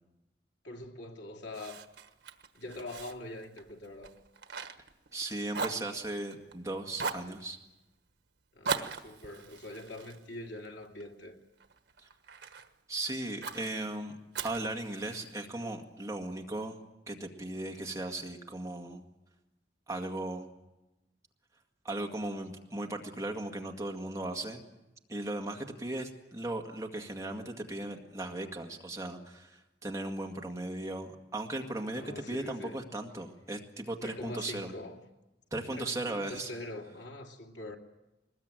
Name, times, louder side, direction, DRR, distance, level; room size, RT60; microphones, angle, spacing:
voice 1, 0.6-1.9 2.5-4.1 8.5-11.4 31.9-32.8 34.0-35.0 35.7-37.8, left 1 dB, 85° left, 2.8 m, -43 dB
Fire, 1.5-5.2 5.5-6.6 7.0-7.3 8.6-11.1 11.6-12.7 13.4-13.7 14.3-15.4, right 5 dB, 80° right, 1.4 m, -39 dB
voice 2, 5.1-7.6 12.9-14.2 14.4-16.8 17.1-19.0 19.9-20.5 21.8-24.6 25.1-34.7 35.5-36.5, right 2 dB, 20° right, 1.9 m, -37 dB
22.0 x 20.5 x 9.0 m
head